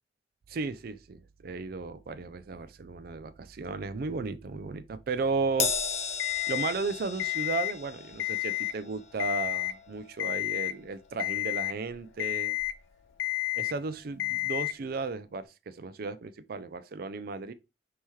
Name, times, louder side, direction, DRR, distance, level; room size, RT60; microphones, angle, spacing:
voice 1, 0.5-5.7 6.5-12.6 13.6-17.5, right 4 dB, 55° right, 0.4 m, -34 dB
Crash cymbal, 5.6-12.2 12.5-12.8 13.8-13.9, left 5 dB, 40° left, 0.7 m, -37 dB
Alarm, 6.2-6.7 7.2-7.7 8.1-8.7 9.2-9.7 10.2-10.7 11.2-11.7 12.2-12.7 13.2-13.7 14.2-14.7, left 21 dB, 85° left, 0.3 m, -31 dB
5.5 x 2.9 x 3.1 m
head